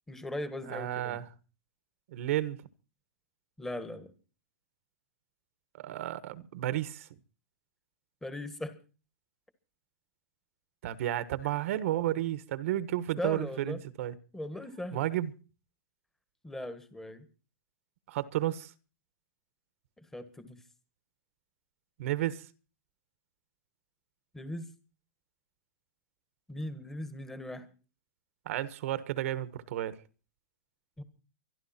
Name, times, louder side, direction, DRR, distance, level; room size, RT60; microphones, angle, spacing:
voice 1, 0.1-1.2 3.6-4.1 8.2-8.7 13.2-13.8 14.3-15.1 16.4-17.3 20.0-20.6 24.3-24.7 26.5-27.7 31.0-31.1, left 1 dB, 5° left, 1.6 m, -39 dB
voice 2, 0.7-1.3 2.1-2.6 5.8-7.1 10.8-14.1 14.9-15.3 18.1-18.7 22.0-22.5 28.4-30.0, right 13 dB, 55° right, 1.3 m, -32 dB
25.0 x 11.5 x 4.4 m
supercardioid pair, 165°, 9 cm